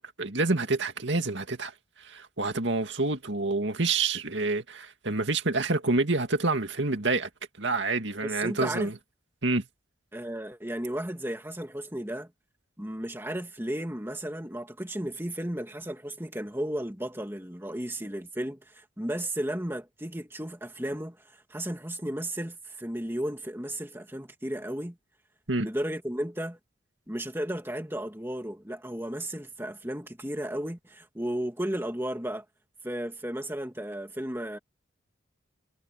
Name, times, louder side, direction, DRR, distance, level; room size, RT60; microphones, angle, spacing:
voice 1, 0.0-1.7 2.0-7.3 7.6-9.0 9.4-9.7 25.5-25.7, right 3 dB, 70° right, 2.2 m, -28 dB
voice 2, 8.2-8.9 10.1-12.3 12.8-21.2 21.5-25.0 25.6-26.6 27.1-32.4 32.8-34.6, right 1 dB, 10° right, 2.2 m, -34 dB
head